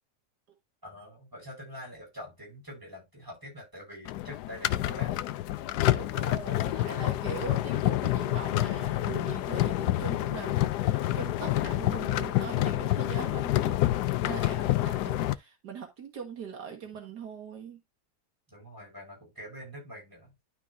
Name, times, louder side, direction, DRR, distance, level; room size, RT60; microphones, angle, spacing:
voice 1, 0.8-5.3 14.5-15.0 18.5-20.3, equal, 10° right, 6.2 m, -45 dB
sound 1, 4.1-15.4, left 15 dB, 80° left, 1.1 m, -28 dB
voice 2, 5.9-13.9 14.2-17.8, right 6 dB, 80° right, 2.1 m, -41 dB
12.0 x 4.8 x 2.6 m
omnidirectional pair, 1.8 m